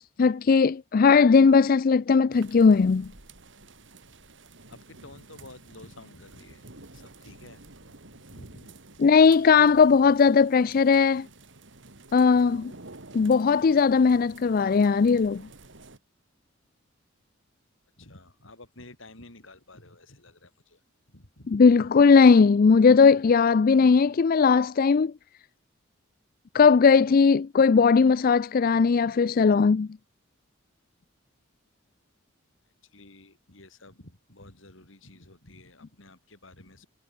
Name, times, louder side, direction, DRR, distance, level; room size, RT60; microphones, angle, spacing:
voice 1, 0.0-3.1 9.0-11.3 12.1-12.7 13.1-15.4 21.5-25.1 26.5-29.9, left 5 dB, 45° left, 0.4 m, -18 dB
sound 1, 2.3-16.0, right 2 dB, 65° right, 3.2 m, -50 dB
voice 2, 4.7-8.7 18.0-20.8 21.1-21.5 21.8-21.9 32.8-36.9, left 2 dB, 70° left, 4.7 m, -51 dB
head